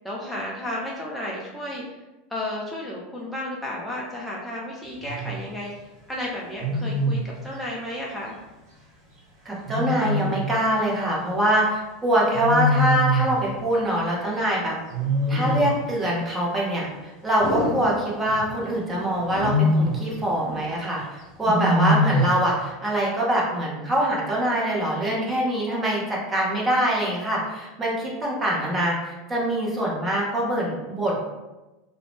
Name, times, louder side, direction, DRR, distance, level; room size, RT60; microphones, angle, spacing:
voice 1, 0.0-1.8 2.3-8.3 20.3-20.7 25.1-25.4, left 1 dB, ahead, -5 dB, 0.5 m, -33 dB
Wild animals, 5.0-5.4 6.6-7.3 9.7-10.6 12.3-13.4 14.9-15.9 17.4-18.5 19.2-20.1 21.4-22.4, equal, 50° right, 1.1 m, -23 dB
voice 2, 9.4-14.8 15.3-31.2, right 1 dB, 15° right, -4 dB, 0.8 m, -24 dB
2.5 x 2.1 x 3.2 m, 1.1 s
figure-of-eight pair, 80°, 0 cm